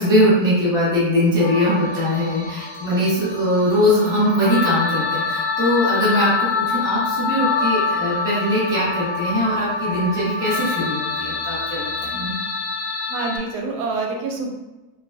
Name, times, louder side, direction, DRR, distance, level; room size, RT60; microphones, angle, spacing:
voice 1, 0.0-12.4, equal, 5° right, -8 dB, 0.7 m, -21 dB
sound 1, 1.4-13.4, left 4 dB, 35° left, 1.4 m, -26 dB
voice 2, 13.1-14.5, right 3 dB, 90° right, 1 dB, 1.2 m, -27 dB
3.3 x 2.2 x 2.3 m, 1.1 s
omnidirectional pair, 1.7 m